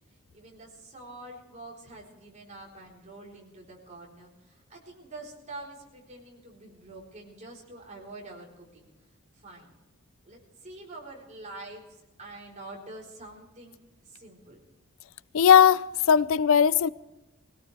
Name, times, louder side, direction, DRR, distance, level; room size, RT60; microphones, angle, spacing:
voice 1, 0.3-8.9 9.4-9.8 10.2-11.9 12.2-13.8 14.0-14.6, right 2 dB, 35° right, 4.0 m, -46 dB
voice 2, 15.3-16.9, left 8 dB, 70° left, 0.4 m, -19 dB
21.0 x 17.5 x 3.3 m
head